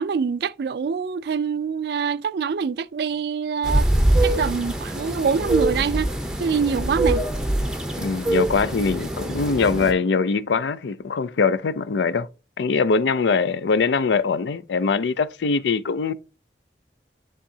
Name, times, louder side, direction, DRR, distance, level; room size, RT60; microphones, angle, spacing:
voice 1, 0.0-3.9 4.2-6.1 6.4-7.2, right 6 dB, 65° right, 0.3 m, -24 dB
sound 1, 3.6-9.9, right 1 dB, 5° right, 0.7 m, -24 dB
voice 2, 8.0-12.3 12.6-16.1, left 4 dB, 90° left, 0.4 m, -22 dB
10.0 x 3.7 x 2.7 m
head